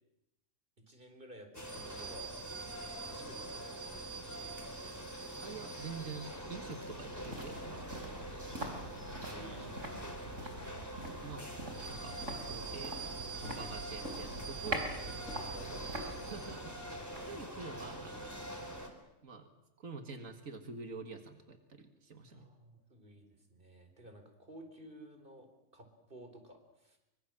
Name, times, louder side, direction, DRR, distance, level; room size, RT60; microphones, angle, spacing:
voice 1, 0.8-2.3 3.1-4.8 8.6-10.2 12.3-12.5 14.6-16.3 22.3-27.0, right 1 dB, 40° right, 6 dB, 4.4 m, -54 dB
sound 1, 1.5-18.9, right 2 dB, 10° left, 3.9 m, -44 dB
voice 2, 5.4-8.4 11.1-11.5 11.9-12.2 12.5-13.0 13.3-14.9 16.2-16.8 17.2-18.4 19.2-19.5 19.8-22.5, right 4 dB, 90° right, 6 dB, 2.2 m, -47 dB
sound 2, 5.5-18.7 19.0-19.1, right 1 dB, 70° right, 4.6 m, -45 dB
25.0 x 24.5 x 7.6 m, 0.87 s
omnidirectional pair, 1.4 m